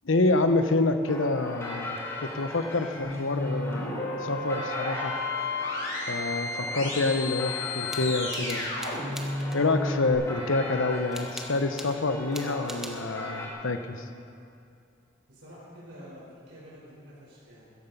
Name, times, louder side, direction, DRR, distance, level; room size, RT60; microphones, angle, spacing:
voice 1, 0.0-5.1 6.1-8.7 9.5-14.1, left 2 dB, 85° left, 9 dB, 1.0 m, -27 dB
sound 1, 1.1-13.5, left 2 dB, 15° left, 1.9 m, -39 dB
sound 2, 3.0-10.1, left 2 dB, 65° left, 4.7 m, -32 dB
sound 3, 7.9-9.6 11.1-12.0 12.3-13.1, right 1 dB, ahead, 1.1 m, -42 dB
voice 2, 15.3-17.7, equal, 70° right, -6 dB, 4.6 m, -48 dB
15.5 x 14.0 x 5.4 m, 2.4 s
head